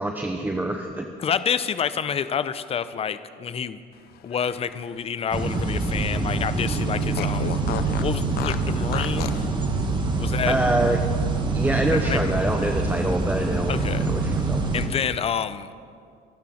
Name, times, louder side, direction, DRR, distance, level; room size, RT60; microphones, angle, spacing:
voice 1, 0.0-1.1 10.5-11.0 11.5-13.7 14.0-14.6, right 1 dB, 10° right, 4 dB, 0.9 m, -25 dB
voice 2, 1.2-3.8 4.2-7.5 8.0-9.4 10.2-10.5 12.0-12.6 13.7-14.1 14.7-15.7, left 7 dB, 35° left, 13 dB, 0.7 m, -28 dB
Fart, 4.1-6.2 6.5-6.6 7.1-9.5, left 10 dB, 70° left, 0.8 m, -35 dB
sound 1, 5.3-14.9, right 3 dB, 25° right, 2.0 m, -25 dB
25.0 x 12.0 x 4.4 m, 2.2 s
cardioid pair, 110°, 17 cm